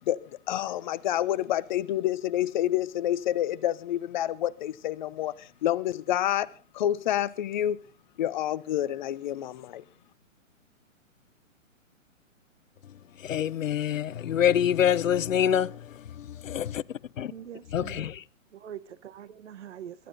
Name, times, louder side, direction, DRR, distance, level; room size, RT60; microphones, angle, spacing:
voice 1, 0.5-6.5 6.7-7.8 8.2-9.8, left 12 dB, 35° left, 0.8 m, -28 dB
voice 2, 13.2-15.7 16.4-16.8 17.2-17.3 17.7-18.2, left 10 dB, 70° left, 0.7 m, -25 dB
voice 3, 17.3-18.1 18.6-19.9, right 9 dB, 60° right, 1.3 m, -43 dB
22.5 x 12.0 x 4.1 m
hypercardioid pair, 135°, 40 cm